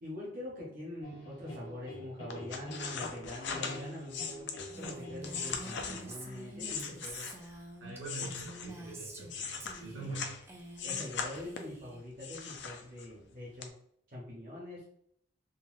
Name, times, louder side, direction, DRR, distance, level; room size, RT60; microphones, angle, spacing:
voice 1, 0.0-4.5 4.8-7.2 9.9-10.3 10.8-13.7 14.1-14.8, left 1 dB, 45° right, -5 dB, 0.8 m, -44 dB
sound 1, 1.0-6.0, equal, 80° left, 0.8 m, -47 dB
sound 2, 2.3-7.6 8.0-10.4 10.8-11.8 12.2-13.2 13.6-13.7, left 6 dB, 60° left, 0.4 m, -40 dB
Female speech woman speaking, 4.7-9.3 9.6-10.2 10.4-11.1 11.3-12.0, right 2 dB, 15° right, 0.3 m, -47 dB
voice 2, 7.8-10.4, right 3 dB, 80° right, -4 dB, 1.2 m, -44 dB
3.8 x 2.1 x 2.5 m, 0.68 s
head